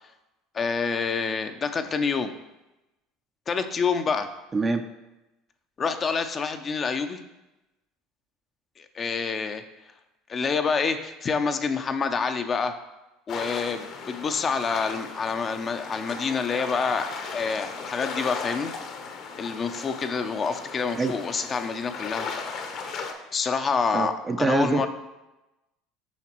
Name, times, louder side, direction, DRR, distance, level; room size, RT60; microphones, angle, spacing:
voice 1, 0.5-2.3 3.5-4.3 5.8-7.2 8.8-9.6 10.3-12.7 13.3-18.7 19.4-22.3 23.3-24.9, left 5 dB, 35° left, 8 dB, 0.5 m, -27 dB
voice 2, 4.5-4.8 21.0-21.2 23.9-24.9, right 3 dB, 25° right, 7 dB, 0.4 m, -25 dB
sound 1, 13.3-23.1, left 5 dB, 55° left, 0.9 m, -36 dB
7.1 x 5.7 x 3.0 m, 0.99 s
supercardioid pair, 90°, 0 cm